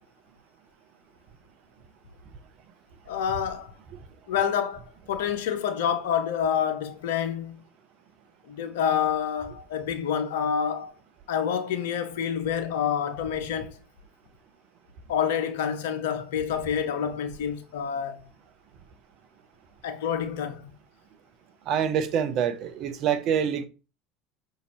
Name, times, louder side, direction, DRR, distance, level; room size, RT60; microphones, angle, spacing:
voice 1, 3.1-3.7 4.3-7.6 8.5-10.9 11.3-13.8 15.1-18.3 19.8-20.6, left 8 dB, 75° left, 0.6 m, -28 dB
voice 2, 21.7-23.7, right 8 dB, 55° right, 0.6 m, -26 dB
5.1 x 2.8 x 2.9 m
hypercardioid pair, 75°, 0 cm